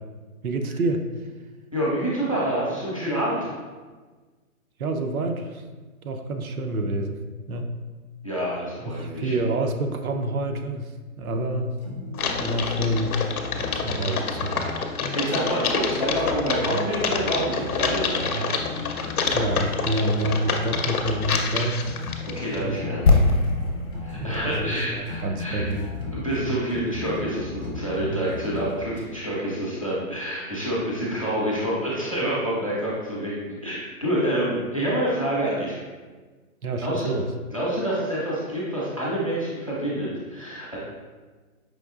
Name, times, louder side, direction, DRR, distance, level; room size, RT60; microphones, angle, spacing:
voice 1, 0.4-1.1 4.8-5.6 6.0-7.2 7.5-7.7 8.8-11.8 12.3-13.1 13.7-14.7 19.3-22.2 22.6-22.8 24.2-25.8 36.6-37.3, right 1 dB, 70° right, 5 dB, 0.6 m, -28 dB
voice 2, 1.7-3.5 8.2-9.3 15.1-18.6 22.3-23.0 24.0-25.7 26.1-35.8 36.8-37.1 37.5-40.8, right 1 dB, 25° left, -7 dB, 0.5 m, -27 dB
sound 1, 11.8-29.0, left 1 dB, 30° right, 0.5 m, -35 dB
Typing, 12.1-22.6, left 5 dB, 75° left, 0.7 m, -28 dB
sound 2, 23.1-27.0 27.2-27.4, left 3 dB, 45° left, 0.8 m, -24 dB
5.0 x 3.1 x 2.4 m, 1.3 s
hypercardioid pair, 170°, 44 cm